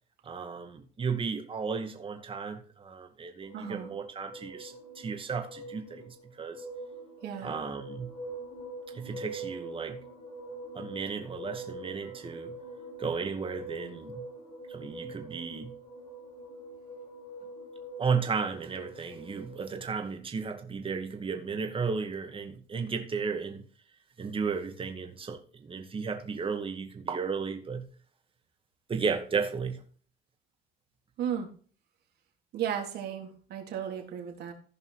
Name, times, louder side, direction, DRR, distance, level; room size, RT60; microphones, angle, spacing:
voice 1, 0.2-6.6 7.4-8.1 8.9-10.0 10.7-12.6 13.0-14.2 14.7-15.7 18.0-23.6 24.2-27.9 28.9-29.8, right 5 dB, 30° right, 2.3 m, -34 dB
sound 1, 3.4-19.9, right 2 dB, 35° left, 4.8 m, -44 dB
voice 2, 3.5-3.9 7.2-7.5 31.2-31.5 32.5-34.5, right 9 dB, 70° right, 3.3 m, -34 dB
15.5 x 5.4 x 4.9 m
cardioid pair, 110°, 17 cm